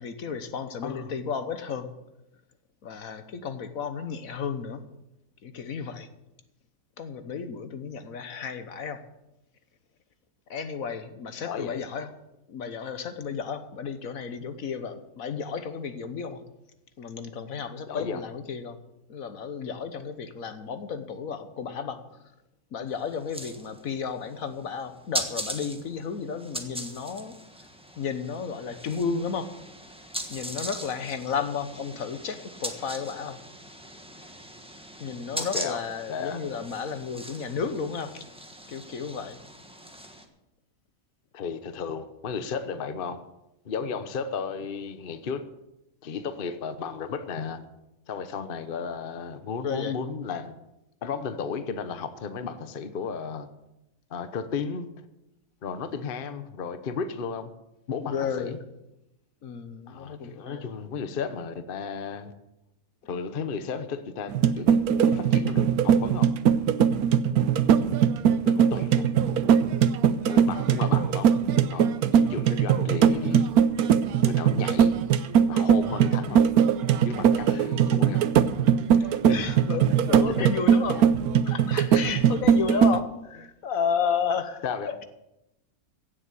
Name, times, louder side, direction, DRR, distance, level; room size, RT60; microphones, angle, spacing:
voice 1, 0.0-1.9 2.8-4.8 5.4-6.1 7.0-9.0 10.5-12.1 12.5-16.4 17.0-18.8 19.1-22.0 22.7-27.4 28.0-29.5 30.3-33.4 35.0-38.1 38.7-39.4 49.6-49.9 58.0-58.6 59.4-60.7 70.3-70.6 77.5-77.6 79.3-81.1 81.4-85.0, left 6 dB, 70° left, 10 dB, 1.4 m, -33 dB
voice 2, 0.8-1.1 11.4-11.9 17.9-18.2 35.4-35.8 36.1-36.4 41.3-43.2 43.6-45.4 46.0-47.6 48.1-50.6 51.0-53.5 54.1-54.9 55.6-57.5 57.9-58.6 59.9-62.3 63.1-64.8 65.0-66.3 68.4-69.1 70.3-71.4 71.7-73.5 74.2-75.0 75.5-76.4 77.0-78.2 79.0-79.5 80.3-80.5 84.6-84.9, left 6 dB, 45° left, 10 dB, 1.0 m, -34 dB
sound 1, 22.9-40.2, right 1 dB, 5° right, 1.3 m, -40 dB
sound 2, 64.3-83.0, right 8 dB, 85° right, 1.2 m, -21 dB
16.5 x 7.5 x 8.3 m, 0.91 s
omnidirectional pair, 1.5 m